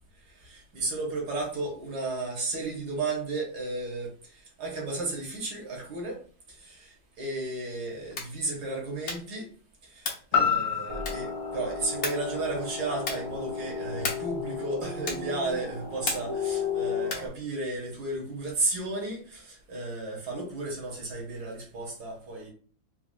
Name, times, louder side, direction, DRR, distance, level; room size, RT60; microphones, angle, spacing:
voice 1, 0.2-6.2 6.5-9.5 9.8-22.5, right 2 dB, 55° right, -1 dB, 1.7 m, -34 dB
sound 1, 8.0-8.4 9.0-9.4 10.0-10.4 11.0-11.4 12.0-12.4 13.0-13.4 14.0-14.4 15.0-15.4 16.0-16.4 17.0-17.4, left 3 dB, 55° left, 1.1 m, -35 dB
sound 2, 10.3-14.4 14.9-15.0, left 6 dB, 75° left, 1.5 m, -31 dB
sound 3, 10.9-17.3, left 5 dB, 40° right, 0.4 m, -34 dB
4.7 x 2.3 x 2.5 m, 0.42 s
omnidirectional pair, 2.2 m